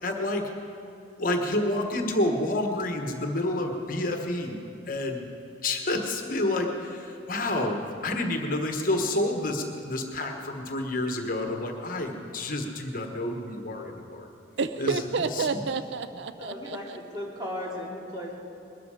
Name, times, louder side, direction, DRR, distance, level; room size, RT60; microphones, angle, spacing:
voice 1, 0.0-0.5 1.2-4.6 4.9-5.3 5.6-14.3 14.8-15.0 15.3-15.6, left 1 dB, 45° left, 3 dB, 1.3 m, -29 dB
voice 2, 14.6-17.0, right 4 dB, 65° right, 12 dB, 0.4 m, -30 dB
voice 3, 16.4-18.4, left 1 dB, 20° right, -3 dB, 2.6 m, -36 dB
21.0 x 13.0 x 5.0 m, 2.7 s
head